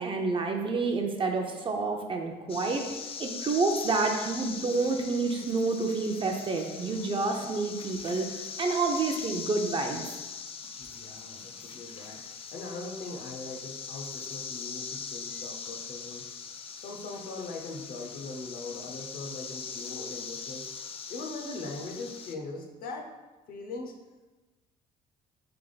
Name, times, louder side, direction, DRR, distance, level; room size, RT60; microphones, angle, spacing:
voice 1, 0.0-2.8 3.2-10.0, right 3 dB, 30° right, 3 dB, 0.5 m, -29 dB
sound 1, 2.5-22.4, left 6 dB, 35° left, 0.3 m, -41 dB
voice 2, 10.8-12.2 12.5-16.2 16.7-20.7 21.1-23.1 23.5-23.9, left 3 dB, 60° left, 2 dB, 0.7 m, -40 dB
3.4 x 3.4 x 3.9 m, 1.2 s
cardioid pair, 110°, 17 cm